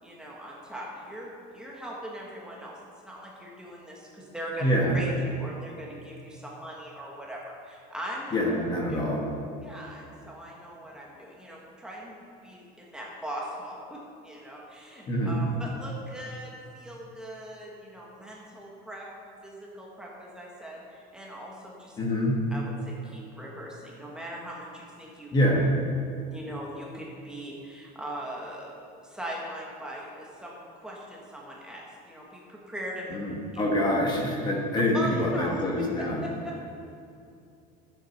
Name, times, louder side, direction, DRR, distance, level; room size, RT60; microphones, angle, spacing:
voice 1, 0.0-2.7 3.0-4.6 4.9-8.3 8.9-9.0 9.6-12.2 12.4-19.1 19.4-22.0 22.5-25.3 26.3-28.7 29.0-33.1 33.5-33.6 34.9-35.6 36.2-36.7, right 1 dB, 5° right, -3 dB, 1.5 m, -40 dB
voice 2, 4.6-5.0 8.3-9.2 15.1-15.4 22.0-22.4 25.3-25.7 33.1-36.2, equal, 25° left, -1 dB, 1.4 m, -25 dB
11.5 x 7.6 x 5.9 m, 2.6 s
cardioid pair, 165°, 18 cm